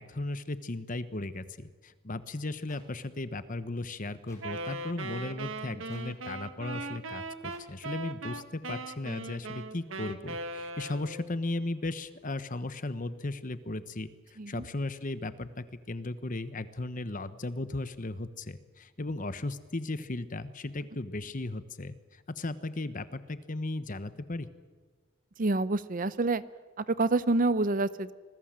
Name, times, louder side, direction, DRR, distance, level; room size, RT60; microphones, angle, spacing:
voice 1, 0.0-14.1 14.5-24.5, left 2 dB, 40° left, 13 dB, 1.1 m, -36 dB
sound 1, 2.7-2.8 4.3-4.4 5.9-6.0 7.5-7.6, left 2 dB, 15° left, 5.0 m, -56 dB
Wind instrument woodwind instrument, 4.4-11.4, right 2 dB, 70° right, 1.5 m, -39 dB
voice 2, 25.4-26.4 26.8-28.1, right 2 dB, 40° right, 16 dB, 0.7 m, -27 dB
26.5 x 20.0 x 7.6 m, 1.4 s
head